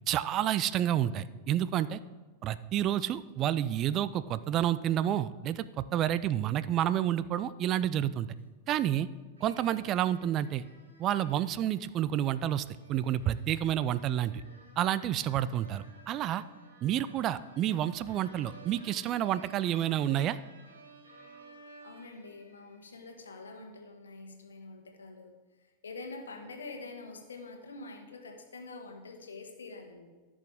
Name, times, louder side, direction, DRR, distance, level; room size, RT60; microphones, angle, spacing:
voice 1, 0.1-2.0 2.4-8.3 8.7-9.1 9.4-10.6 11.0-14.3 14.8-16.4 16.8-20.4, right 11 dB, 35° right, 16 dB, 0.3 m, -29 dB
sound 1, 9.4-23.1, right 3 dB, 70° right, 2.1 m, -55 dB
voice 2, 21.8-25.3 25.8-30.1, left 3 dB, 70° left, 4 dB, 1.4 m, -46 dB
14.5 x 6.2 x 3.5 m, 1.3 s
figure-of-eight pair, 90°, 0 cm